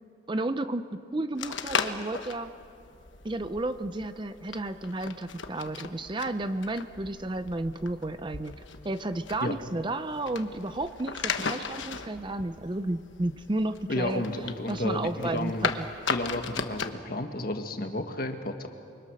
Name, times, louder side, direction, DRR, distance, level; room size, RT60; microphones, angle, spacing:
voice 1, 0.3-2.5 3.2-8.5 8.8-14.2 14.7-15.9, right 2 dB, 25° right, 10 dB, 0.6 m, -32 dB
sound 1, 1.4-16.9, left 5 dB, 65° left, 1.2 m, -37 dB
voice 2, 13.9-15.7 16.1-18.7, left 1 dB, 45° left, 5 dB, 1.6 m, -32 dB
28.5 x 24.5 x 6.4 m, 2.5 s
head